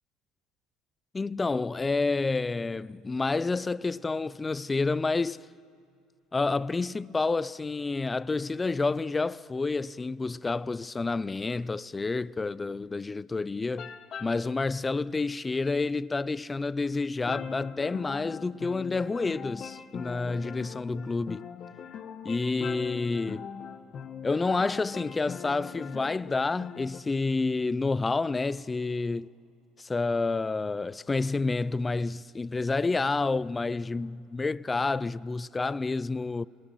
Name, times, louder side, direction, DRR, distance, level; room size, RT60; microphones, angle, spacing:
voice 1, 1.1-5.5 6.3-13.9 14.2-21.5 22.2-23.5 24.2-29.3 29.8-36.5, left 3 dB, 20° left, 0.5 m, -29 dB
sound 1, 13.8-14.6 17.3-27.0, left 7 dB, 50° left, 1.3 m, -41 dB
28.5 x 19.5 x 9.3 m
hypercardioid pair, 75°, 0 cm